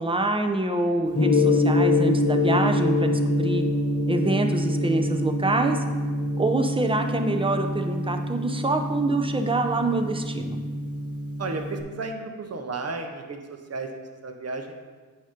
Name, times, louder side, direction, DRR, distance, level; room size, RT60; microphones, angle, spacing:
voice 1, 0.0-3.6 4.1-5.8 6.4-10.6, right 2 dB, 15° right, 5 dB, 0.6 m, -26 dB
Gong, 1.1-11.8, left 2 dB, 45° left, 1.0 m, -25 dB
voice 2, 11.4-14.7, right 3 dB, 50° right, 4 dB, 0.8 m, -33 dB
8.4 x 2.9 x 5.1 m, 1.4 s
cardioid pair, 70°, 33 cm